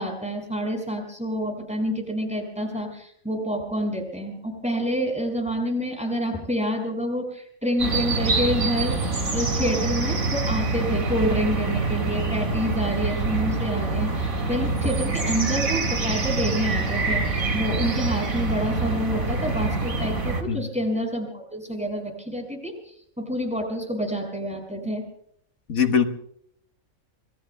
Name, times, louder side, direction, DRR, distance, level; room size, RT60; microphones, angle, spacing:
voice 1, 0.0-9.0 9.3-25.1, equal, 5° right, 2 dB, 5.8 m, -28 dB
sound 1, 7.8-20.4, right 3 dB, 75° right, 2.9 m, -25 dB
voice 2, 25.7-26.1, left 7 dB, 80° left, 6 dB, 1.9 m, -21 dB
28.0 x 21.5 x 2.2 m, 0.70 s
omnidirectional pair, 1.5 m